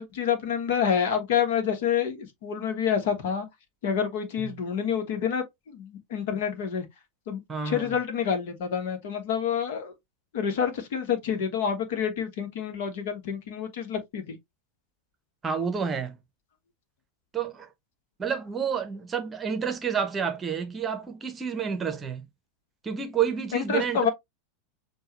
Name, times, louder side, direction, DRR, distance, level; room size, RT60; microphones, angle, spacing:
voice 1, 0.0-3.5 3.8-6.8 7.3-7.4 7.6-9.9 10.3-14.4 23.5-24.1, left 7 dB, 55° left, 1.2 m, -28 dB
voice 2, 7.5-7.9 15.4-16.2 17.3-17.7 18.2-22.2 22.8-24.1, right 7 dB, 20° right, 0.9 m, -29 dB
6.8 x 2.4 x 3.0 m
figure-of-eight pair, 85°, 0 cm